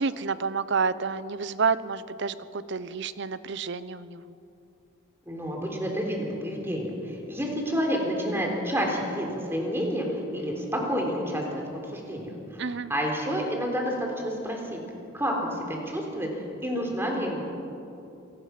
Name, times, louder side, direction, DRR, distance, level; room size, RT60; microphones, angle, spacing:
voice 1, 0.0-4.3 12.6-12.9, right 5 dB, 60° right, 15 dB, 0.7 m, -29 dB
voice 2, 5.3-11.4 11.7-14.8 15.1-17.5, equal, 10° right, 0 dB, 3.7 m, -29 dB
27.0 x 18.5 x 6.0 m, 2.7 s
head